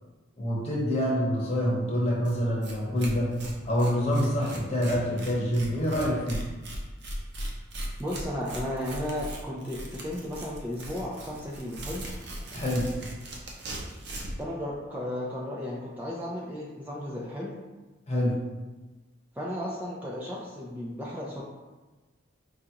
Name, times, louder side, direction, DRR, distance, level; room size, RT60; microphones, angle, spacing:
voice 1, 0.4-3.3 3.6-6.4 12.5-12.9 18.1-18.4, equal, 35° left, -4 dB, 0.9 m, -26 dB
Tearing, 2.2-2.3 2.6-2.7 3.0-14.4, right 1 dB, 55° right, 0.6 m, -38 dB
voice 2, 8.0-12.1 14.4-17.6 19.4-21.4, left 1 dB, 10° right, -5 dB, 0.4 m, -34 dB
5.0 x 2.4 x 2.8 m, 1.2 s
head